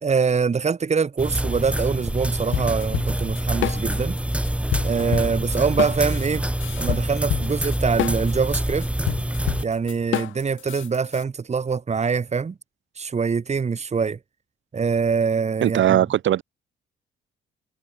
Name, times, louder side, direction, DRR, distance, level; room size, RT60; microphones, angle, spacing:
voice 1, 0.0-4.2 4.8-6.5 6.8-8.9 9.6-12.5 13.0-14.2 14.7-16.0, right 5 dB, 35° right, 2.3 m, -24 dB
sound 1, 1.2-9.6, right 1 dB, 5° right, 6.6 m, -26 dB
sound 2, 2.5-4.2 4.4-11.2, left 14 dB, 80° left, 1.2 m, -28 dB
voice 2, 15.6-16.4, right 12 dB, 70° right, 2.6 m, -19 dB
cardioid pair, 90°, 20 cm